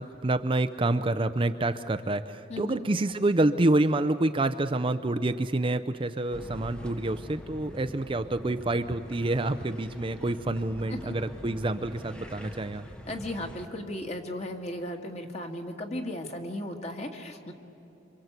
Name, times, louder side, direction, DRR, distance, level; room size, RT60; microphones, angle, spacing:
voice 1, 0.0-12.9, right 2 dB, 25° right, 9 dB, 0.5 m, -27 dB
sound 1, 6.3-13.7, equal, 5° left, 1.1 m, -44 dB
voice 2, 13.1-17.5, left 1 dB, 35° left, 3 dB, 2.0 m, -36 dB
27.0 x 24.5 x 8.1 m, 3.0 s
head